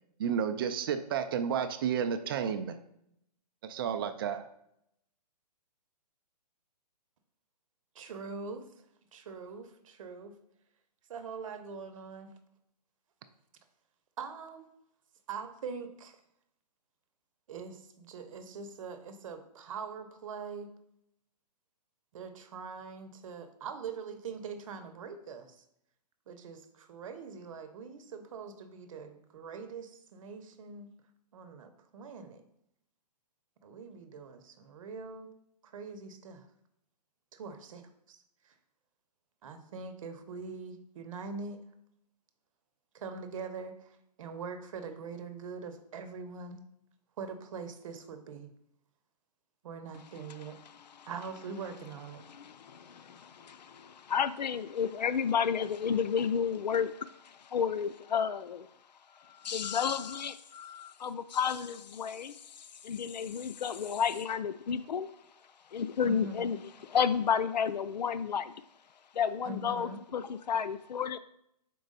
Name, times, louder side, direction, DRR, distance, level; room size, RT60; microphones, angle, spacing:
voice 1, 0.2-2.8 3.6-4.5, right 8 dB, 35° right, 9 dB, 0.4 m, -31 dB
voice 2, 7.9-8.7 9.1-10.4 11.1-12.3 14.2-14.7 15.3-16.2 17.5-20.7 22.1-25.6 26.3-30.9 31.3-32.4 33.6-35.3 35.6-36.5 37.3-37.8 38.1-38.2 38.4-38.5 39.4-41.6 42.9-46.6 47.2-48.5 49.6-50.6 51.1-52.2 66.0-66.5 69.4-70.0, right 5 dB, 50° right, 8 dB, 0.9 m, -43 dB
voice 3, 50.7-51.1 52.3-58.7 59.1-65.1 65.7-68.5 69.1-71.2, left 7 dB, 90° left, 13 dB, 0.4 m, -32 dB
6.1 x 4.6 x 4.0 m, 0.76 s
hypercardioid pair, 145°, 21 cm